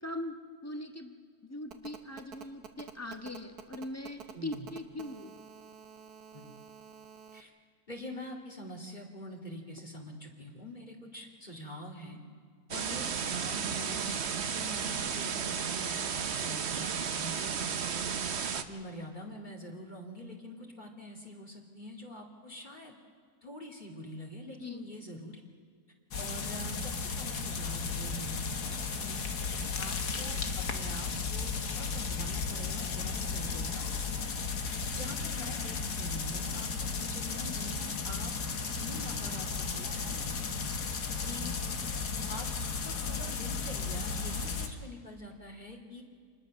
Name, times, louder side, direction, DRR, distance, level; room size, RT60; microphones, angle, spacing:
voice 1, 0.0-5.4 24.5-24.8 41.2-41.5, left 1 dB, 10° left, 6 dB, 1.2 m, -41 dB
Telephone, 1.7-7.4, right 7 dB, 75° right, 1.8 m, -48 dB
voice 2, 4.3-4.7 6.3-6.5 7.3-7.5 7.9-12.2 12.7-18.1 18.5-23.0 23.4-25.4 26.2-29.2 29.8-34.2 35.0-38.3 38.8-40.4 41.2-41.6 42.3-42.5 42.8-46.0, left 1 dB, 30° left, 0 dB, 2.6 m, -45 dB
sound 1, 12.7-18.6, right 7 dB, 50° right, 1.1 m, -33 dB
sound 2, 26.1-44.7, left 5 dB, 90° left, 2.1 m, -34 dB
27.0 x 20.5 x 6.5 m, 2.1 s
omnidirectional pair, 1.7 m